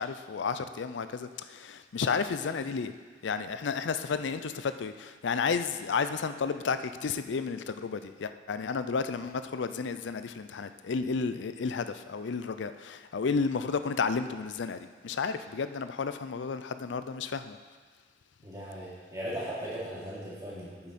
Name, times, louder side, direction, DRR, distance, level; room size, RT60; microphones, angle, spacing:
voice 1, 0.0-2.9 3.2-17.6, left 5 dB, 80° left, 11 dB, 0.4 m, -32 dB
voice 2, 18.4-20.9, equal, 20° right, -9 dB, 2.8 m, -38 dB
9.5 x 7.1 x 4.2 m, 1.5 s
head